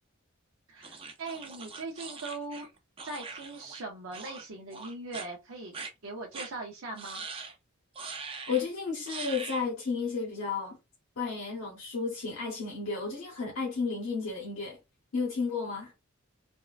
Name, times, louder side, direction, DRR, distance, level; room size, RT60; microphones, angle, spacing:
voice 1, 0.7-2.7 3.0-5.7 6.0-7.2, right 3 dB, 75° right, 0.6 m, -40 dB
sound 1, 0.8-3.8 4.1-4.5 4.7-5.3 5.7-5.9 6.3-6.5 7.0-7.5 8.0-8.6 9.1-9.7, right 4 dB, 25° right, 0.4 m, -42 dB
voice 2, 8.5-10.8 11.2-14.8 15.1-15.9, left 4 dB, 85° left, 0.9 m, -32 dB
3.5 x 2.2 x 2.4 m
head